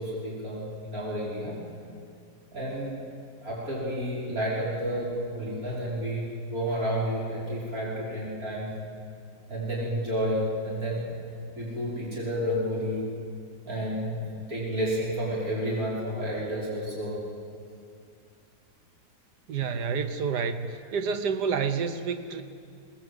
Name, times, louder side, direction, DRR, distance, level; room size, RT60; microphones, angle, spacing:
voice 1, 0.0-1.6 2.5-2.9 3.4-8.7 9.5-11.1 11.6-13.1 13.7-17.2, equal, 60° right, -6 dB, 5.6 m, -30 dB
voice 2, 19.5-22.4, right 6 dB, 80° right, 9 dB, 1.5 m, -29 dB
22.0 x 20.0 x 8.1 m, 2.4 s
omnidirectional pair, 1.7 m